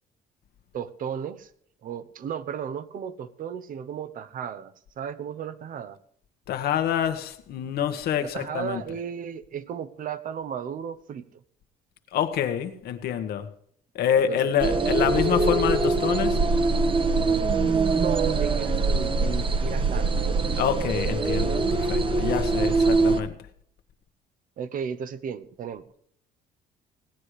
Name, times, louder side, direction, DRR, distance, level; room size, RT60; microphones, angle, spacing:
voice 1, 0.7-1.5 1.8-6.0 8.2-11.4 14.3-14.5 17.9-20.2 24.6-25.8, right 8 dB, 55° right, 1.0 m, -34 dB
voice 2, 6.5-8.8 12.1-13.5 13.9-16.4 20.5-23.3, left 9 dB, 70° left, 1.5 m, -26 dB
sound 1, 14.6-23.2, right 3 dB, 30° right, 1.1 m, -23 dB
17.5 x 9.8 x 5.0 m
cardioid pair, 110°, 17 cm